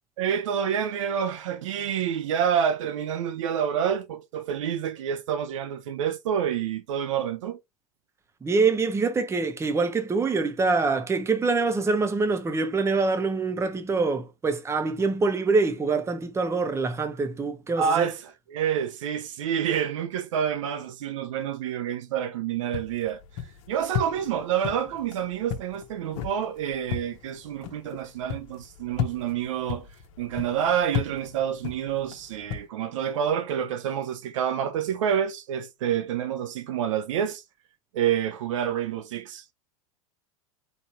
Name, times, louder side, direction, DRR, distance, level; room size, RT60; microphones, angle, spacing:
voice 1, 0.2-7.6 17.8-23.2 23.7-29.9 30.2-37.4 37.9-39.4, right 8 dB, 60° right, 0.9 m, -28 dB
voice 2, 8.4-18.1, right 4 dB, 15° right, 0.9 m, -25 dB
sound 1, 22.7-32.7, left 9 dB, 55° left, 1.0 m, -35 dB
4.2 x 4.0 x 3.1 m
figure-of-eight pair, 85°, 18 cm